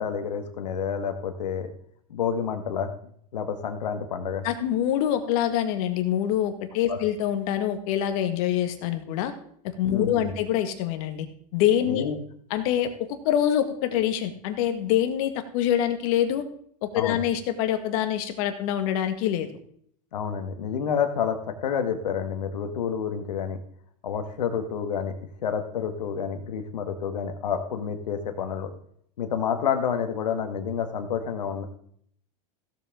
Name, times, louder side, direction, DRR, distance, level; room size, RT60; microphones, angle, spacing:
voice 1, 0.0-1.7 2.1-2.9 3.3-4.5 6.9-7.0 9.9-10.3 11.9-12.2 17.0-17.2 20.1-23.6 24.0-25.2 25.4-28.7 29.2-31.6, left 7 dB, 90° left, 7 dB, 1.8 m, -29 dB
voice 2, 4.4-9.3 9.6-11.3 11.5-12.0 12.5-16.4 16.8-19.5, left 10 dB, 60° left, 8 dB, 1.8 m, -25 dB
16.0 x 7.5 x 3.8 m, 0.63 s
hypercardioid pair, 115°, 20 cm